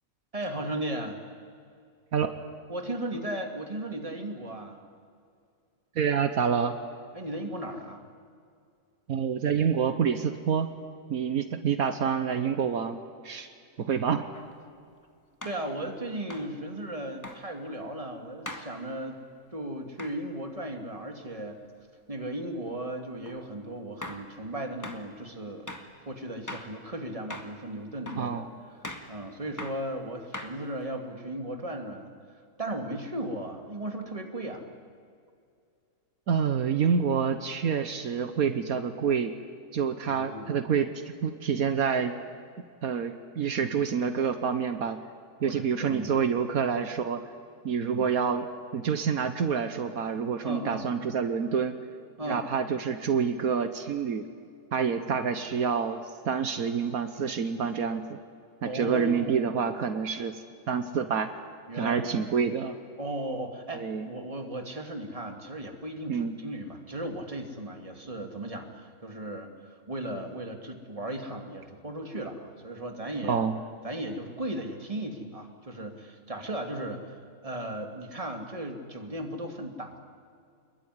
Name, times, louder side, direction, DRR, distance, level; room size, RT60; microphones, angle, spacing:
voice 1, 0.3-1.2 2.7-4.8 7.1-8.0 15.4-19.2 19.5-21.6 22.1-25.7 26.1-28.5 29.1-32.1 32.6-34.7 40.0-40.6 45.4-46.2 47.8-48.1 50.4-50.9 52.2-52.5 58.6-59.7 61.7-62.1 63.0-73.4 73.8-77.2 77.4-80.0, right 1 dB, 25° right, 4 dB, 2.5 m, -36 dB
voice 2, 5.9-6.7 9.1-10.7 11.1-13.0 13.2-13.5 13.8-14.2 28.2-28.5 36.3-39.3 39.7-40.9 41.2-42.1 42.8-45.0 45.4-47.2 47.6-48.5 48.7-51.8 52.3-54.2 54.7-58.2 58.6-60.3 60.7-61.3 61.8-62.8 63.7-64.1 66.1-66.3 73.2-73.5, right 6 dB, 75° right, 9 dB, 1.6 m, -27 dB
sound 1, 14.3-14.5 15.4-15.7 16.3-16.5 17.2-17.4 18.5-18.7 20.0-20.2 23.3-23.4 24.0-24.3 24.8-25.0 25.7-25.9 26.5-26.7 27.3-27.6 28.1-28.3 28.8-29.1 29.6-29.8 30.3-30.8, left 1 dB, 10° left, 1.9 m, -40 dB
25.5 x 21.5 x 9.8 m, 2.3 s
omnidirectional pair, 1.5 m